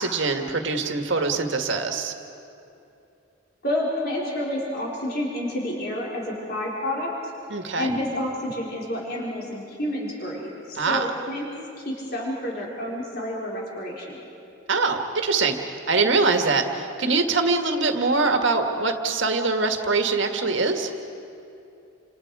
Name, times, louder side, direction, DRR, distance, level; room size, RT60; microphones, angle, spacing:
voice 1, 0.0-2.1 7.5-7.9 10.8-11.1 14.7-20.9, right 3 dB, 65° right, 5 dB, 1.8 m, -23 dB
voice 2, 3.6-7.1 7.8-11.5 11.8-14.2, left 1 dB, 50° left, -4 dB, 4.4 m, -29 dB
29.0 x 27.0 x 4.9 m, 2.7 s
head